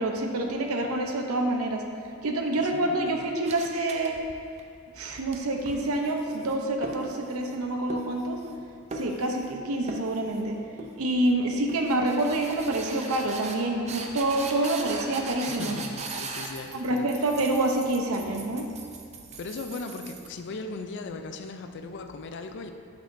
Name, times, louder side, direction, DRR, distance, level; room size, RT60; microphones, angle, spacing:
voice 1, 0.0-1.8 2.2-4.2 4.9-8.4 8.9-10.6 11.0-15.8 16.7-18.7, right 1 dB, 75° right, 3 dB, 0.7 m, -27 dB
voice 2, 2.8-3.2 14.6-14.8 15.5-17.1 19.4-22.7, left 3 dB, 55° left, 6 dB, 0.4 m, -38 dB
sound 1, 3.4-4.6 5.0-7.6 7.9-8.6 8.9-9.6 9.9-10.5 10.8-11.3 11.7-20.3, right 3 dB, 30° right, 0.5 m, -40 dB
8.1 x 6.3 x 2.6 m, 2.3 s
head